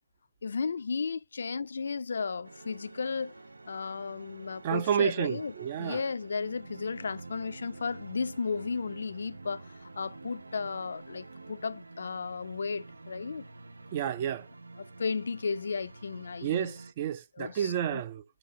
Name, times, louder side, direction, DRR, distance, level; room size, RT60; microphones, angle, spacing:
voice 1, 0.4-3.3 3.7-5.5 5.8-13.5 15.0-16.8 17.4-18.0, left 5 dB, 60° left, 0.4 m, -34 dB
sound 1, 2.4-16.9, right 3 dB, 90° right, 0.7 m, -48 dB
voice 2, 4.6-6.0 13.9-14.5 16.4-18.2, right 9 dB, 25° right, 0.4 m, -30 dB
8.5 x 3.9 x 3.8 m
hypercardioid pair, 165°, 0 cm